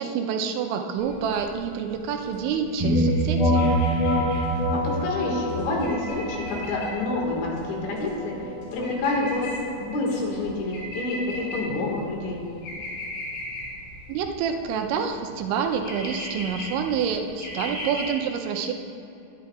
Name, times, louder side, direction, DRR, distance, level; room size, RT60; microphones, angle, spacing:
voice 1, 0.0-3.7 14.1-18.7, right 7 dB, 85° right, 4 dB, 3.0 m, -27 dB
sound 1, 1.0-18.0, left 1 dB, 60° left, 4.5 m, -39 dB
sound 2, 2.8-12.4, equal, 25° right, 1.7 m, -27 dB
voice 2, 4.5-9.5 9.8-12.4, left 2 dB, 80° left, -2 dB, 4.2 m, -28 dB
21.0 x 9.4 x 2.4 m, 2.7 s
omnidirectional pair, 5.3 m